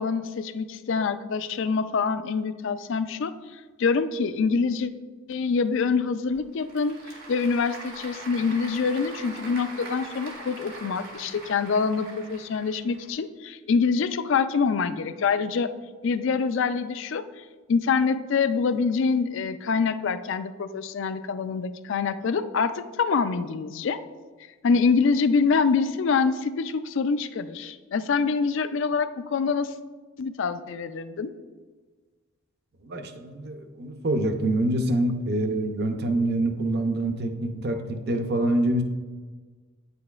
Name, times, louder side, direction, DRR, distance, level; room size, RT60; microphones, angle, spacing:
voice 1, 0.0-3.3 3.8-4.9 5.3-7.0 7.3-15.7 16.0-17.2 17.7-24.0 24.6-29.7 30.2-31.3, left 5 dB, 60° left, 12 dB, 0.3 m, -25 dB
Applause / Crowd, 6.3-13.1, right 2 dB, 75° right, 2.0 m, -42 dB
voice 2, 32.9-38.8, right 1 dB, 50° right, 6 dB, 0.6 m, -26 dB
9.1 x 6.8 x 2.4 m, 1.4 s
head